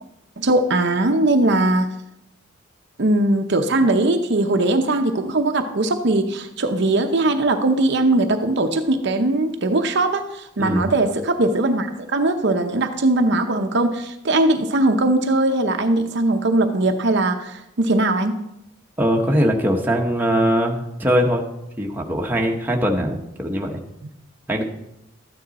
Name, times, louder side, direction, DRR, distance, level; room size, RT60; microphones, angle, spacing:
voice 1, 0.4-1.9 3.0-18.3, right 2 dB, 55° right, 6 dB, 0.8 m, -20 dB
voice 2, 10.6-10.9 19.0-21.4 21.8-23.7 24.5-24.6, equal, 10° right, 0 dB, 1.1 m, -21 dB
12.5 x 9.2 x 4.1 m, 0.85 s
head